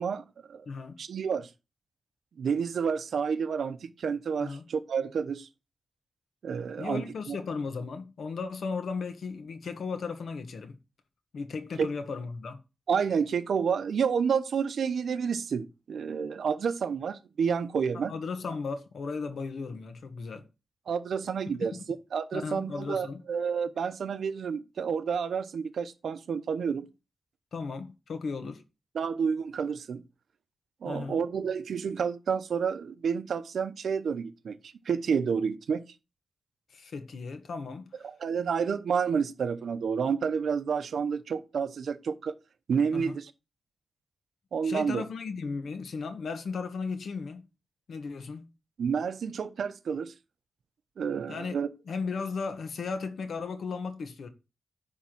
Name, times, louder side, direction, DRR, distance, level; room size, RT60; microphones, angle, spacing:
voice 1, 0.0-0.6 1.0-1.5 2.4-5.5 6.4-7.4 11.8-11.9 12.9-18.1 20.9-21.7 22.1-26.9 28.9-30.0 30.8-34.6 34.9-35.8 38.2-42.3 42.7-43.3 44.5-45.0 48.8-50.1 51.0-51.7, right 6 dB, 80° right, 0.8 m, -29 dB
voice 2, 0.7-1.0 4.4-4.7 6.8-10.8 11.3-12.6 18.1-20.5 21.6-21.8 22.3-23.2 27.5-28.6 30.8-31.2 36.7-38.0 42.9-43.2 44.6-47.5 47.9-48.5 51.3-51.6 51.9-54.3, left 4 dB, 70° left, 1.3 m, -36 dB
10.0 x 3.6 x 6.0 m
wide cardioid pair, 125°, 0 cm